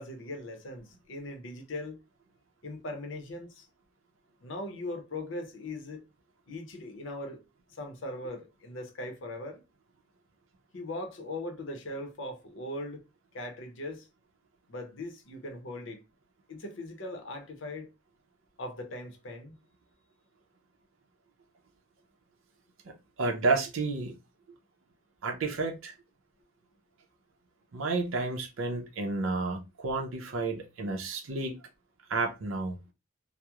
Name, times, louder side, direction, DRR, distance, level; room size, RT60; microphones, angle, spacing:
voice 1, 0.0-2.0 2.6-3.7 4.4-6.0 6.5-7.4 7.7-9.6 10.7-13.0 13.3-14.1 14.7-16.0 16.5-17.9 18.6-19.5, left 1 dB, 65° left, 0.6 m, -39 dB
voice 2, 23.2-24.1 25.2-25.9 27.7-31.6 32.1-32.8, right 3 dB, 70° right, 0.5 m, -31 dB
2.9 x 2.0 x 2.3 m
head